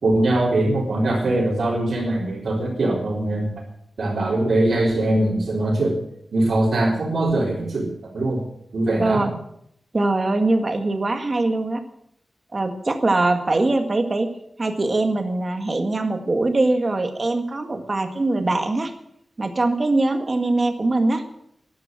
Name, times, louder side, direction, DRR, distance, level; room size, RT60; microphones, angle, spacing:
voice 1, 0.0-3.5 4.0-6.0 6.3-8.5 8.7-9.3, right 1 dB, 75° right, -7 dB, 3.7 m, -22 dB
voice 2, 9.0-9.3 9.9-11.8 12.5-14.3 14.6-18.9 19.4-21.2, right 2 dB, 35° right, 6 dB, 1.8 m, -22 dB
12.5 x 11.5 x 7.6 m, 0.73 s
wide cardioid pair, 140°, 0 cm